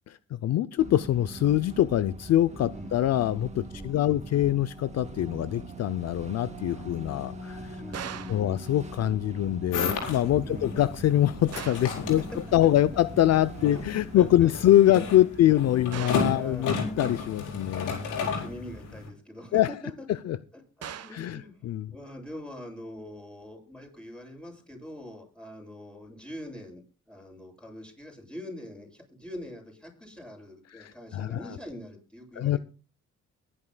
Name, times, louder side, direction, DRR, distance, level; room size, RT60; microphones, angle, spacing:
voice 1, 0.1-7.8 8.3-12.2 12.5-18.0 19.5-19.7 20.1-20.4 21.1-21.9 30.7-31.6 32.4-32.6, left 12 dB, 60° left, 15 dB, 0.5 m, -24 dB
sound 1, 0.8-14.5, right 1 dB, 20° right, 2.4 m, -42 dB
voice 2, 3.7-4.2 7.8-8.6 10.4-10.7 12.0-12.4 13.7-13.8 14.1-14.5 15.0-15.1 15.4-15.5 15.9-16.7 18.0-19.9 20.5-26.8 27.1-32.6, left 1 dB, 5° left, 0 dB, 7.7 m, -43 dB
sound 2, 7.9-8.5 11.5-12.0 15.9-16.4 20.8-21.3, right 9 dB, 55° right, 1.1 m, -39 dB
sound 3, 9.7-19.1, left 5 dB, 90° left, 4.8 m, -33 dB
22.5 x 11.0 x 2.3 m, 0.34 s
cardioid pair, 90°, 30 cm